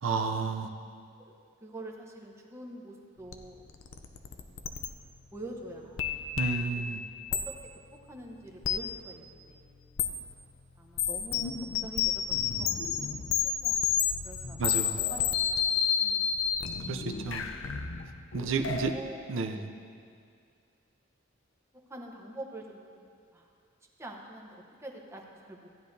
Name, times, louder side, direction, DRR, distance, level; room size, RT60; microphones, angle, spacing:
voice 1, 0.0-0.7 6.4-7.0 14.6-15.0 16.9-17.5 18.3-18.9 19.3-19.6, right 4 dB, 85° right, 5 dB, 0.5 m, -31 dB
voice 2, 1.6-3.6 4.3-4.7 5.3-6.1 6.9-7.0 7.4-7.5 7.9-9.8 10.8-11.6 11.8-15.3 15.8-16.5 18.9-19.2 19.5-19.7 21.9-23.5 24.0-25.7, right 1 dB, 15° right, 0 dB, 0.9 m, -46 dB
sound 1, 3.3-3.4 3.7-4.9 6.0-6.8 7.3-7.4 8.6-8.8 10.0-10.1 11.0-19.0, left 8 dB, 85° left, 0.6 m, -30 dB
15.0 x 10.0 x 2.7 m, 2.3 s
head